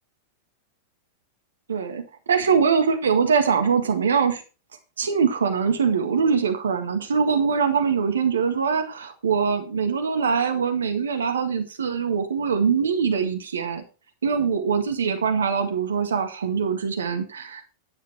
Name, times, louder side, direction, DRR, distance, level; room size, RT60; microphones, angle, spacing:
voice 1, 1.7-2.0 2.3-4.4 5.0-13.8 14.2-17.6, right 6 dB, 70° right, 6 dB, 1.7 m, -23 dB
10.5 x 8.0 x 4.6 m, 0.34 s
figure-of-eight pair, 90°, 0 cm